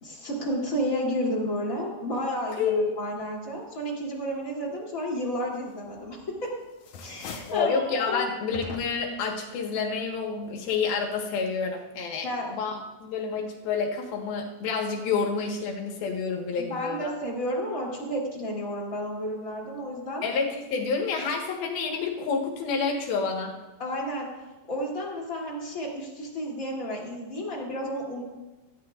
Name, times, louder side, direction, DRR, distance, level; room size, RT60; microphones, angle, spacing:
voice 1, 0.0-6.5 7.0-8.2 12.2-12.5 16.7-20.2 23.8-24.3 24.7-28.2, equal, 25° left, -4 dB, 3.0 m, -31 dB
voice 2, 2.6-3.0 7.5-12.3 12.5-12.7 13.0-17.1 20.2-23.6, left 5 dB, 85° left, 1 dB, 3.4 m, -28 dB
sound 1, 6.0-6.4 6.7-7.7 8.5-9.2, left 4 dB, 70° left, 1.6 m, -41 dB
17.0 x 13.5 x 2.5 m, 1.1 s
omnidirectional pair, 4.2 m